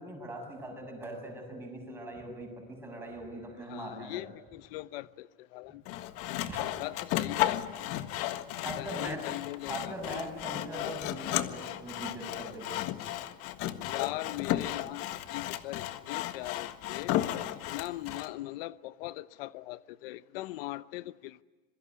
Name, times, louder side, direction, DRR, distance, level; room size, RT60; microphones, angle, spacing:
voice 1, 0.0-4.2 6.5-6.6 8.6-9.3 9.7-12.7, right 1 dB, 10° right, 7.3 m, -41 dB
voice 2, 3.7-5.8 6.8-8.0 8.6-10.2 13.8-17.2 17.7-21.4, left 17 dB, 75° left, 0.9 m, -40 dB
Sawing, 5.8-18.3, left 13 dB, 50° left, 1.6 m, -34 dB
27.0 x 23.0 x 9.6 m
cardioid pair, 160°, 29 cm